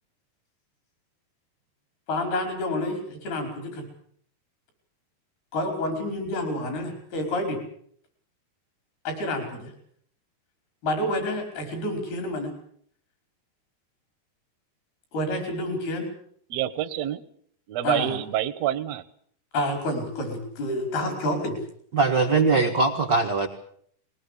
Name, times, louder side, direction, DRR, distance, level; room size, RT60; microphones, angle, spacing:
voice 1, 2.1-3.9 5.5-7.6 9.1-9.7 10.8-12.5 15.1-16.1 17.8-18.2 19.5-21.6, left 1 dB, 70° left, 4 dB, 7.1 m, -28 dB
voice 2, 16.5-17.2 17.7-19.0, right 12 dB, 70° right, 8 dB, 1.6 m, -27 dB
voice 3, 21.9-23.5, right 4 dB, 85° right, 4 dB, 0.9 m, -21 dB
21.0 x 19.0 x 8.4 m, 0.62 s
omnidirectional pair, 4.6 m